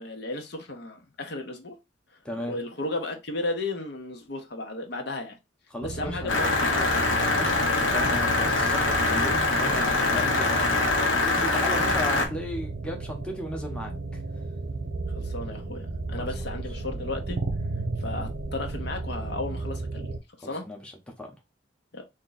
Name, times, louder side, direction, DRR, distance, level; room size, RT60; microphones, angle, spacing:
voice 1, 0.0-1.7 2.5-5.4 5.8-7.1 15.2-17.4 18.0-20.6 21.9-22.0, left 2 dB, 60° left, 0.8 m, -34 dB
voice 2, 2.2-2.6 5.7-6.5 7.2-13.9 20.4-20.9 21.2-21.3, left 1 dB, 5° left, 0.8 m, -35 dB
sound 1, 5.8-20.2, right 3 dB, 70° right, 0.6 m, -34 dB
sound 2, 6.3-12.3, left 3 dB, 80° left, 1.2 m, -24 dB
3.6 x 2.6 x 3.9 m
head